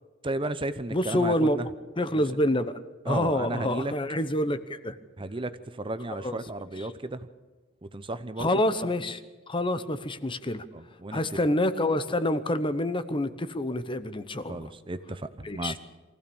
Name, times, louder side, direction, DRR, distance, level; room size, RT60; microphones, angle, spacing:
voice 1, 0.2-1.7 2.1-2.2 3.0-3.9 5.2-7.3 7.8-8.5 10.7-11.4 14.5-15.8, right 2 dB, 25° right, 12 dB, 0.8 m, -34 dB
voice 2, 0.9-1.6 2.0-2.8 3.1-5.0 6.2-6.4 8.4-9.2 9.5-10.7 11.1-14.7 15.4-15.7, left 1 dB, 25° left, 12 dB, 1.0 m, -27 dB
24.0 x 15.5 x 7.1 m, 1.3 s
head